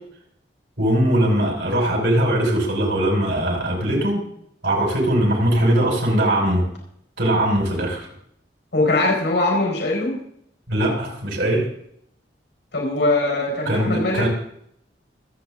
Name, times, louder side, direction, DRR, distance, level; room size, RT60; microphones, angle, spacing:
voice 1, 0.8-4.2 4.6-6.7 7.2-8.1 10.7-11.7 13.7-14.3, right 1 dB, 80° right, 0 dB, 5.6 m, -20 dB
voice 2, 8.7-10.2 12.7-14.3, left 2 dB, 75° left, -1 dB, 4.8 m, -21 dB
25.0 x 8.7 x 3.8 m, 0.71 s
head